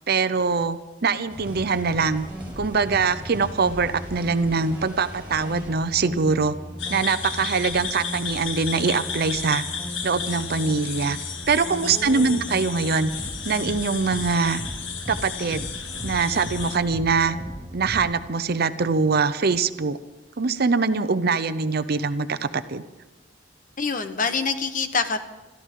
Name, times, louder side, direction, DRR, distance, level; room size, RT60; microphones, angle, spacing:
voice 1, 0.1-2.3 2.6-6.6 6.9-9.6 10.0-11.2 11.5-13.1 13.4-14.6 15.1-15.7 16.0-17.4 17.7-20.0 20.4-22.8, right 4 dB, 55° right, 12 dB, 0.7 m, -23 dB
sound 1, 1.3-18.0, equal, 10° right, 6.0 m, -37 dB
sound 2, 6.8-16.8, left 6 dB, 90° left, 1.5 m, -33 dB
voice 2, 11.8-12.4 23.8-25.2, left 4 dB, 45° left, 9 dB, 1.1 m, -26 dB
27.5 x 14.0 x 3.7 m, 1.1 s
head